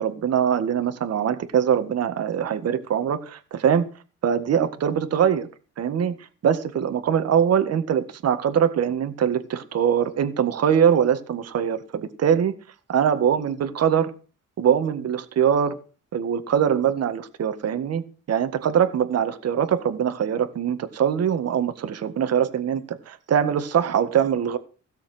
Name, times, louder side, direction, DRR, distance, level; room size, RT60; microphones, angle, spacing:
voice 1, 0.0-3.9 4.2-5.5 5.8-6.2 6.4-12.5 12.9-14.1 14.6-15.8 16.1-24.6, right 8 dB, 55° right, 1.7 m, -22 dB
16.5 x 7.1 x 7.9 m
cardioid pair, 140°, 30 cm